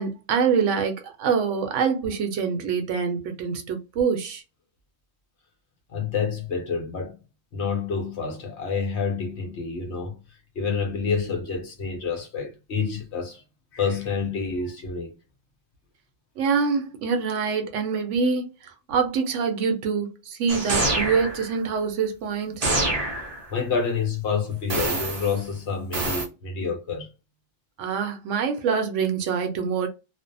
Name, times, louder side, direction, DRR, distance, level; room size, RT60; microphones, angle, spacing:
voice 1, 0.0-4.4 16.4-18.5 18.9-22.7 27.8-29.9, right 6 dB, 75° right, 0.9 m, -25 dB
voice 2, 5.9-7.1 7.5-10.2 10.6-13.4 13.7-15.1 23.5-27.1, left 5 dB, 65° left, 1.0 m, -28 dB
sound 1, 20.5-21.5 22.6-23.5 24.7-25.4 25.9-26.3, right 2 dB, 45° right, 0.5 m, -26 dB
2.5 x 2.0 x 2.5 m
omnidirectional pair, 1.3 m